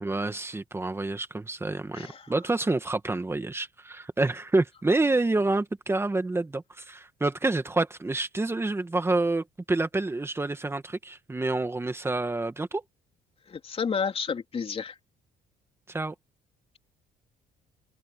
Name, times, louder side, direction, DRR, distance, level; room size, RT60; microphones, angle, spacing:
voice 1, 0.0-12.8 15.9-16.2, right 2 dB, 15° right, 1.9 m, -28 dB
voice 2, 1.9-2.3 13.5-15.0, left 6 dB, 35° left, 3.8 m, -31 dB
cardioid pair, 110°, 17 cm